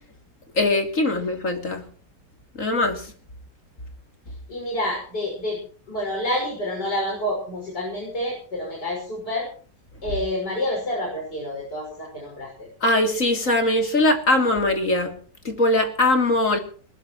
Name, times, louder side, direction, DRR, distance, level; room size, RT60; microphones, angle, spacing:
voice 1, 0.5-1.8 2.6-3.0 12.8-15.1 15.4-16.6, left 2 dB, 45° left, 4 dB, 3.4 m, -21 dB
voice 2, 4.5-5.6 5.9-9.5 10.0-12.7, left 1 dB, 65° left, -1 dB, 6.7 m, -28 dB
21.0 x 20.0 x 3.1 m, 0.43 s
omnidirectional pair, 1.9 m